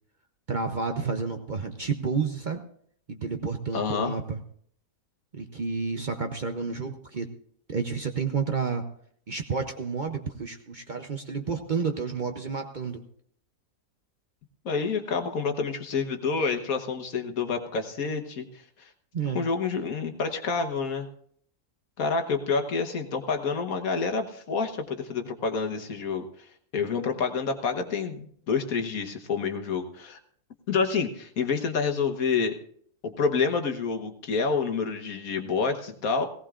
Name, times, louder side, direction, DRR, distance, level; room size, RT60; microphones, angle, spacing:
voice 1, 0.5-2.6 3.1-4.4 5.3-7.3 7.7-8.9 9.3-13.0 19.1-19.4, right 5 dB, 45° right, 5 dB, 0.7 m, -30 dB
voice 2, 3.7-4.1 14.6-18.9 19.3-21.1 22.0-26.2 26.7-30.2 30.7-32.6 33.0-36.3, left 5 dB, 75° left, 6 dB, 1.6 m, -28 dB
18.0 x 17.0 x 2.5 m, 0.62 s
omnidirectional pair, 1.5 m